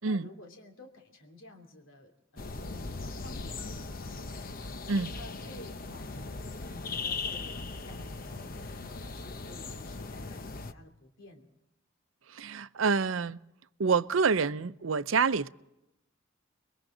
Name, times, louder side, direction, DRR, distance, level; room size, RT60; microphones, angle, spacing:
voice 1, 0.0-4.7 5.1-11.5, left 1 dB, 75° left, 3.0 m, -52 dB
sound 1, 2.4-10.7, left 3 dB, 45° left, 0.9 m, -39 dB
voice 2, 12.3-13.4 13.8-15.5, right 5 dB, 90° right, 0.6 m, -27 dB
30.0 x 22.5 x 3.9 m
head